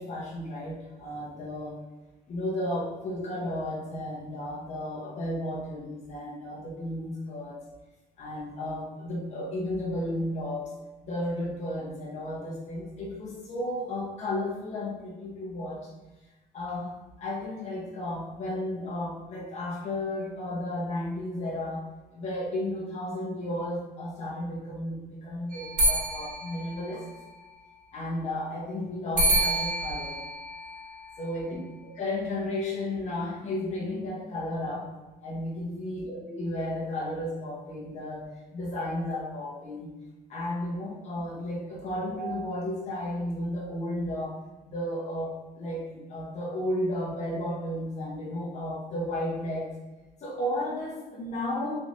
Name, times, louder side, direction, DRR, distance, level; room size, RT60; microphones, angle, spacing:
voice 1, 0.0-1.8 2.3-7.6 8.2-10.7 11.0-15.9 16.5-16.9 17.2-27.0 27.9-30.2 31.2-34.9 35.2-38.2 38.5-39.9 40.3-44.4 44.6-49.7 50.2-51.8, left 1 dB, 40° left, -4 dB, 0.8 m, -33 dB
Service Bell ringing (Angry), 25.5-27.5 29.2-31.5, right 1 dB, 50° right, 1.3 m, -29 dB
3.4 x 3.1 x 2.5 m, 1.1 s
cardioid pair, 110°, 17 cm